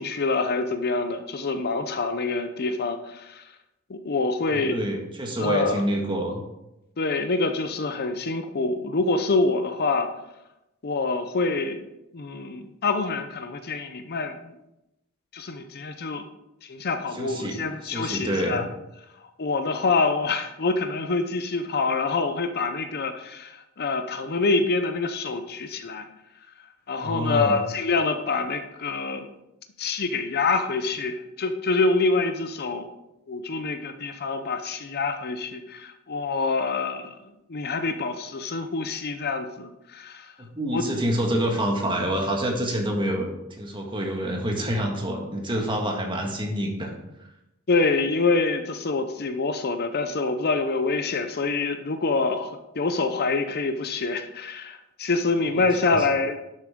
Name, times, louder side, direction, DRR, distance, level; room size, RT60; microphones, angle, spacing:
voice 1, 0.0-3.4 3.9-4.8 5.4-5.8 7.0-10.1 10.8-11.9 12.1-14.3 15.3-16.2 16.6-18.6 19.4-26.1 26.9-29.3 29.8-32.8 33.3-37.1 37.5-40.3 40.7-40.9 47.7-56.4, left 3 dB, 45° left, 8 dB, 0.7 m, -26 dB
voice 2, 4.5-6.4 17.1-18.6 27.0-27.6 40.4-46.9 55.6-55.7 55.9-56.1, equal, 20° right, 1 dB, 1.8 m, -27 dB
11.5 x 8.0 x 3.7 m, 0.89 s
head